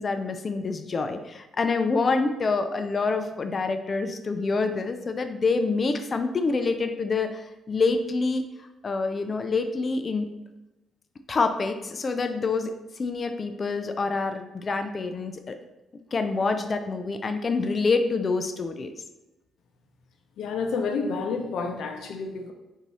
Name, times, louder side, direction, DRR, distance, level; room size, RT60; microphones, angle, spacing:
voice 1, 0.0-8.5 8.8-10.3 11.3-15.6 16.1-18.9, left 4 dB, 40° left, 7 dB, 0.4 m, -26 dB
voice 2, 20.4-22.5, left 4 dB, 75° left, 4 dB, 0.7 m, -29 dB
4.0 x 2.7 x 4.7 m, 1.0 s
cardioid pair, 90°, 0 cm